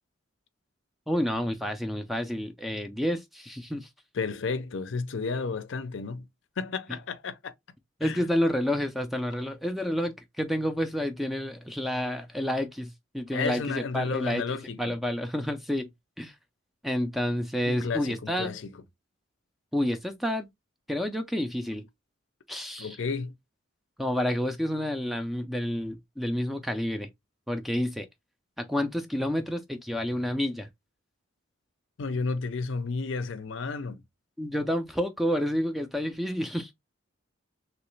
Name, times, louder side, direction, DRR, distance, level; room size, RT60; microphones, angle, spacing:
voice 1, 1.1-3.9 8.0-14.4 14.8-15.9 16.2-16.3 16.8-18.6 19.7-20.5 20.9-21.9 22.5-23.0 24.0-27.1 27.5-28.1 28.6-30.7 34.4-36.7, equal, ahead, 0.4 m, -29 dB
voice 2, 4.1-6.3 6.6-7.5 8.0-8.2 13.3-14.9 17.7-18.8 22.8-23.3 32.0-34.0, left 4 dB, 70° left, 0.5 m, -32 dB
3.1 x 2.9 x 3.1 m
head